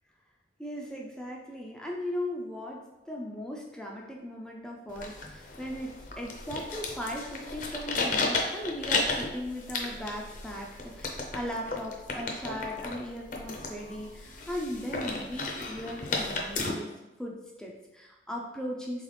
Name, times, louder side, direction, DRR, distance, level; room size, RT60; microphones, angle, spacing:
voice 1, 0.6-16.9 17.2-19.0, equal, 5° left, -1 dB, 0.4 m, -38 dB
sound 1, 4.9-16.7, left 3 dB, 50° left, 0.6 m, -34 dB
4.0 x 3.5 x 3.3 m, 1.0 s
head